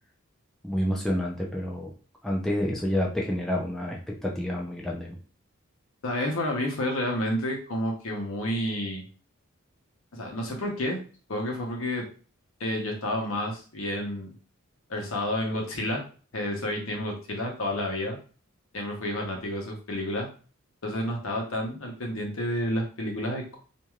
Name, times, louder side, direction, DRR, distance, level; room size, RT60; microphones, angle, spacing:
voice 1, 0.6-1.9 2.2-5.2, left 1 dB, ahead, -2 dB, 0.4 m, -29 dB
voice 2, 6.0-9.0 10.1-11.0 11.3-12.0 12.6-14.3 14.9-16.0 16.3-18.2 18.7-20.3 20.8-23.6, left 1 dB, 70° left, 1 dB, 0.8 m, -30 dB
3.0 x 2.6 x 2.3 m, 0.38 s
head